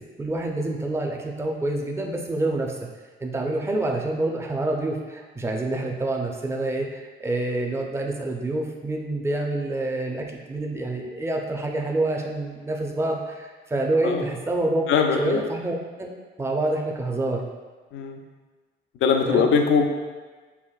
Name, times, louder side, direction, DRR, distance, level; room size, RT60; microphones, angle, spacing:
voice 1, 0.0-2.8 3.2-14.8 15.2-16.1 16.4-17.5 19.2-19.5, right 2 dB, 15° right, 0 dB, 0.5 m, -27 dB
voice 2, 14.9-15.4 17.9-18.2 19.0-19.9, left 6 dB, 75° left, 4 dB, 0.5 m, -21 dB
5.5 x 2.5 x 2.3 m, 1.3 s
cardioid pair, 90°, 20 cm